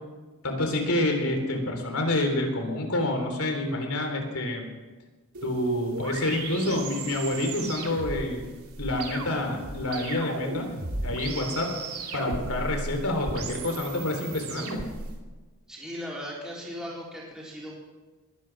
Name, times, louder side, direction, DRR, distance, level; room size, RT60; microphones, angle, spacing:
voice 1, 0.4-4.6 5.4-8.5 8.8-10.7 11.0-11.7 12.1-14.8, left 1 dB, 75° left, 3 dB, 3.6 m, -28 dB
sound 1, 5.4-15.1, right 3 dB, 80° right, 2.5 m, -36 dB
voice 2, 15.7-17.7, equal, 5° right, -6 dB, 4.2 m, -37 dB
21.5 x 10.0 x 6.1 m, 1.3 s
head